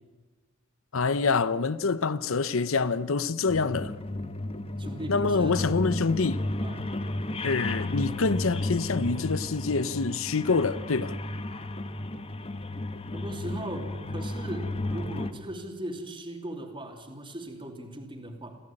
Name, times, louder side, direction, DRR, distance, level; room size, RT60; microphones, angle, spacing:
voice 1, 0.9-3.9 5.1-6.4 7.4-11.1, left 4 dB, 65° left, 0.8 m, -26 dB
sound 1, 3.5-15.3, left 2 dB, 30° left, 1.2 m, -33 dB
voice 2, 4.8-5.8 6.6-6.9 13.1-18.6, right 1 dB, 25° right, 3.1 m, -38 dB
28.5 x 15.0 x 8.9 m
head